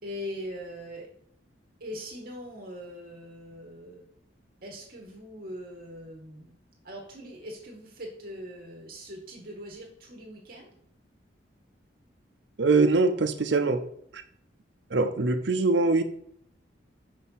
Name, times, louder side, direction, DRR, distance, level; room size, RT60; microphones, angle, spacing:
voice 1, 0.0-1.1 1.8-4.1 4.6-6.5 6.8-10.7, equal, 50° right, -1 dB, 1.3 m, -41 dB
voice 2, 12.6-13.8 14.1-14.2 14.9-16.0, right 3 dB, 70° right, 9 dB, 0.7 m, -23 dB
5.6 x 4.4 x 5.5 m, 0.69 s
head